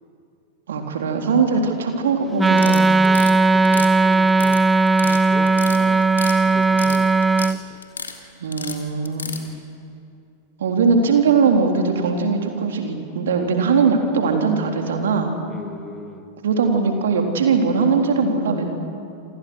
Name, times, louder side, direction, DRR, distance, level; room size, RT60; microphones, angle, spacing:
voice 1, 0.7-2.9 8.4-9.4 10.6-15.3 16.4-18.7, right 5 dB, 60° right, 3 dB, 3.6 m, -20 dB
Wind instrument woodwind instrument, 2.4-7.6, right 3 dB, 10° right, 0.5 m, -17 dB
sound 1, 2.5-3.3 3.6-4.6 4.9-5.2 5.5-6.4 6.6-7.5 7.8-8.1 8.5-9.4, left 6 dB, 70° left, 2.6 m, -32 dB
voice 2, 3.0-4.6 5.0-6.1 6.5-7.1 7.5-7.8 9.4-9.6 15.5-16.3, left 3 dB, 15° left, 6 dB, 2.2 m, -39 dB
28.5 x 27.0 x 6.4 m, 2.5 s
figure-of-eight pair, 90°, 0 cm